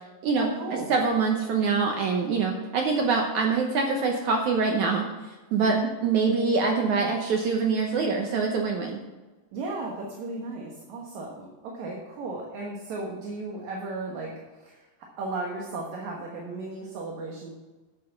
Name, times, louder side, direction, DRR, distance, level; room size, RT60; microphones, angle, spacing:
voice 1, 0.4-0.9 5.6-5.9 9.5-14.9 15.2-17.5, right 3 dB, 60° right, -1 dB, 2.2 m, -35 dB
voice 2, 0.9-5.8 6.0-9.0, right 4 dB, 80° right, 1 dB, 1.7 m, -25 dB
10.5 x 7.7 x 5.8 m, 1.2 s
omnidirectional pair, 4.7 m